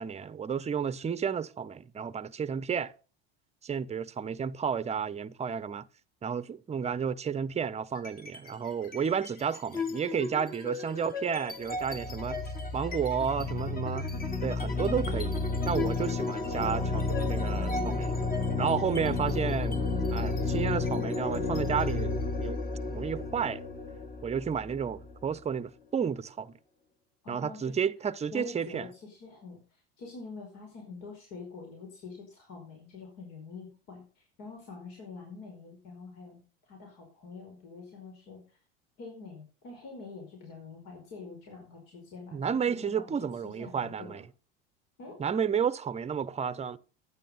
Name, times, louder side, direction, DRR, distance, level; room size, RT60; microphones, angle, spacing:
voice 1, 0.0-2.9 3.6-5.8 6.2-12.4 12.7-14.1 14.4-15.4 15.6-18.2 18.6-19.8 20.1-22.6 22.9-23.6 24.2-26.5 27.3-28.9 42.3-44.2 45.2-46.8, right 7 dB, 20° right, 0.8 m, -32 dB
sound 1, 8.0-8.5 8.8-25.4, left 3 dB, 30° left, 2.6 m, -32 dB
voice 2, 27.2-27.8 28.3-36.4 36.7-38.6 39.0-43.1 43.4-44.2 45.0-45.2, left 4 dB, 60° left, 5.2 m, -46 dB
11.5 x 9.7 x 5.6 m
supercardioid pair, 100°, 29 cm